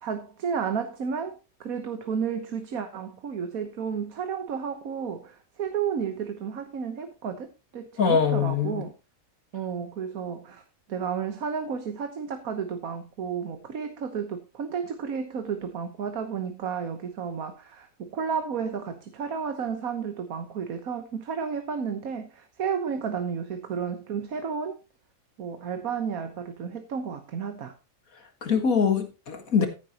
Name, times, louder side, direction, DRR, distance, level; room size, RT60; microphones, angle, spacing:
voice 1, 0.0-8.9 9.5-10.6 10.9-24.8 25.4-27.7, right 6 dB, 90° right, 1.6 m, -32 dB
voice 2, 8.0-8.8 28.4-29.7, left 6 dB, 80° left, 2.2 m, -23 dB
14.5 x 9.2 x 2.9 m
omnidirectional pair, 1.4 m